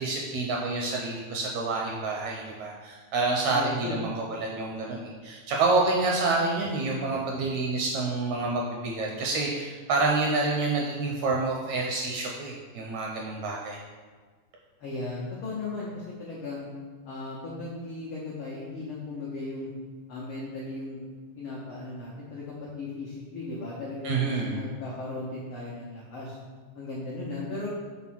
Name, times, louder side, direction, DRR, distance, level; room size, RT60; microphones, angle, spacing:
voice 1, 0.0-13.8 24.0-24.7, right 3 dB, 75° right, -1 dB, 1.6 m, -28 dB
voice 2, 3.5-4.0 14.8-16.7 17.0-19.7 20.1-21.1 21.4-26.4 26.7-27.7, left 3 dB, 90° left, -5 dB, 1.2 m, -36 dB
6.1 x 3.7 x 6.0 m, 1.4 s
omnidirectional pair, 3.8 m